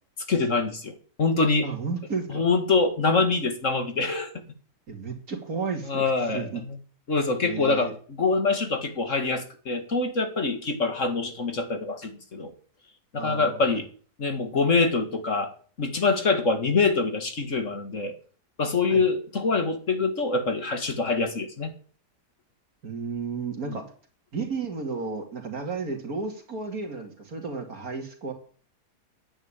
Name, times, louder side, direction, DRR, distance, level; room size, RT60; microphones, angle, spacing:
voice 1, 0.3-1.7 2.3-4.3 5.8-6.8 7.1-7.9 8.2-12.5 13.1-13.9 14.2-15.5 15.8-18.1 18.6-21.7 23.7-23.8, left 4 dB, 50° left, 7 dB, 2.3 m, -25 dB
voice 2, 1.6-2.4 4.9-6.6 7.4-7.9 13.2-13.6 18.9-19.0 22.8-23.8 24.3-28.3, right 4 dB, 60° right, 4 dB, 3.0 m, -33 dB
10.5 x 9.0 x 8.8 m, 0.43 s
omnidirectional pair, 1.8 m